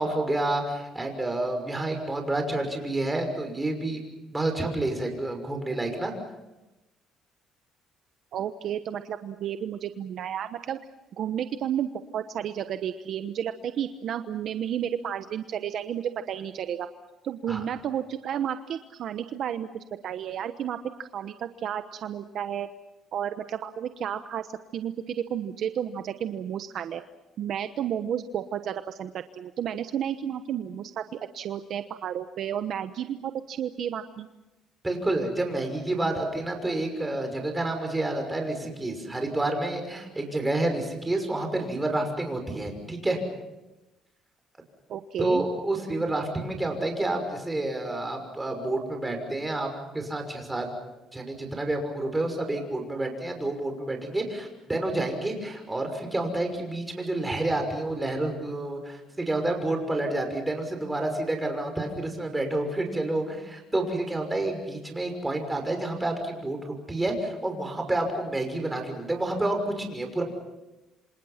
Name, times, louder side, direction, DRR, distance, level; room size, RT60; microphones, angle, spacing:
voice 1, 0.0-4.0 4.3-6.1 17.5-17.6 34.8-43.2 45.2-50.7 51.1-70.2, right 2 dB, 10° right, 4 dB, 6.0 m, -29 dB
voice 2, 8.3-10.8 11.2-16.9 17.2-22.7 23.1-27.0 27.4-34.3 44.9-45.4, right 9 dB, 60° right, 9 dB, 1.0 m, -32 dB
28.0 x 26.5 x 5.9 m, 1.0 s
cardioid pair, 120°, 0 cm